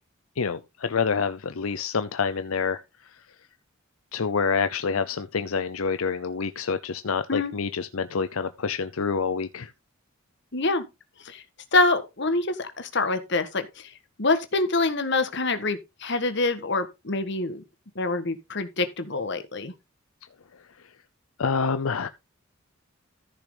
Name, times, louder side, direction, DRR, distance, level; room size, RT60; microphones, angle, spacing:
voice 1, 0.4-2.8 4.1-9.7 21.4-22.1, left 5 dB, 80° left, 0.6 m, -27 dB
voice 2, 10.5-10.8 11.2-11.4 11.7-13.9 14.2-17.6 17.9-19.7, left 3 dB, 55° left, 1.5 m, -25 dB
14.0 x 5.9 x 3.9 m
head